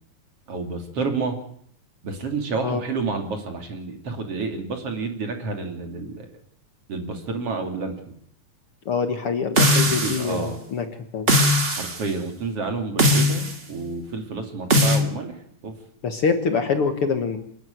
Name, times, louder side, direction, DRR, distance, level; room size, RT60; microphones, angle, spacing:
voice 1, 0.5-1.4 2.0-6.3 6.9-8.1 9.8-10.6 11.7-15.7, right 4 dB, 50° right, 4 dB, 3.6 m, -30 dB
voice 2, 8.9-10.9 11.1-11.3 16.0-17.4, left 5 dB, 55° left, 7 dB, 2.0 m, -25 dB
sound 1, 9.6-10.3 11.3-12.0 13.0-13.6 14.7-15.0, equal, 25° right, 1.7 m, -19 dB
28.5 x 11.0 x 9.3 m, 0.64 s
omnidirectional pair, 3.5 m